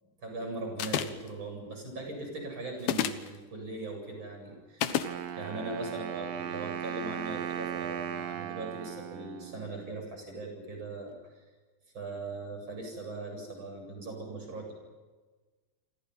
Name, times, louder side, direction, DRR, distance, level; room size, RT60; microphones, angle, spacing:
voice 1, 0.2-5.0 5.3-11.1 11.9-14.7, right 2 dB, 25° right, 2 dB, 8.6 m, -40 dB
sound 1, 0.8-1.3 2.8-3.3 4.8-5.1, left 10 dB, 65° left, 2.7 m, -29 dB
Wind instrument woodwind instrument, 5.0-10.0, right 10 dB, 75° right, 3.9 m, -37 dB
29.0 x 25.5 x 5.7 m, 1.3 s
omnidirectional pair, 5.4 m